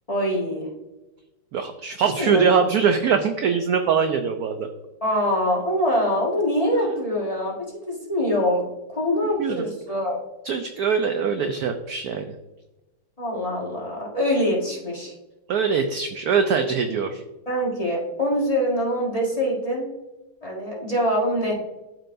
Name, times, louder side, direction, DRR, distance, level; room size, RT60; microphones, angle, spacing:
voice 1, 0.1-0.7 2.2-2.4 5.0-7.6 7.9-8.6 8.9-10.2 13.2-15.1 17.5-19.9 20.4-21.7, equal, 20° left, -4 dB, 1.5 m, -24 dB
voice 2, 1.5-4.7 9.2-9.6 10.4-12.3 15.5-17.2, right 6 dB, 75° right, 6 dB, 0.9 m, -22 dB
12.5 x 4.5 x 2.6 m, 1.0 s
omnidirectional pair, 2.1 m